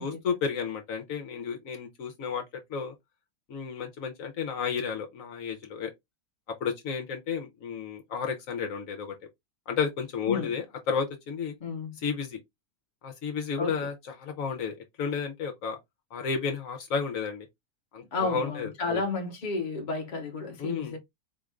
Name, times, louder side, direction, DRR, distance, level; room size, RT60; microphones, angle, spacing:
voice 1, 0.0-2.4 2.7-2.9 3.5-5.9 6.6-9.2 9.7-11.5 12.0-12.4 13.0-15.8 16.1-17.5 17.9-19.0 20.6-21.0, left 6 dB, 70° left, 1.2 m, -32 dB
voice 2, 11.6-12.0 13.6-13.8 18.1-21.0, left 3 dB, 35° left, 1.0 m, -32 dB
4.4 x 2.5 x 3.2 m
omnidirectional pair, 1.5 m